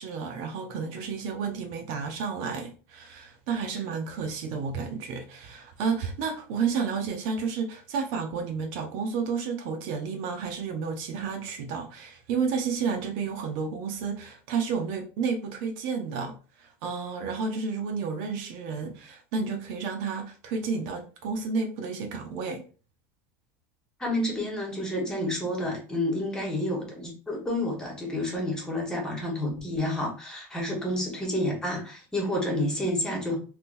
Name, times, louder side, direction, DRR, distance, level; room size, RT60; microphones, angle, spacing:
voice 1, 0.0-22.6, right 5 dB, 65° right, 0.7 m, -31 dB
voice 2, 24.0-33.4, left 1 dB, 10° left, 1.4 m, -29 dB
3.6 x 2.8 x 2.6 m
supercardioid pair, 130°, 8 cm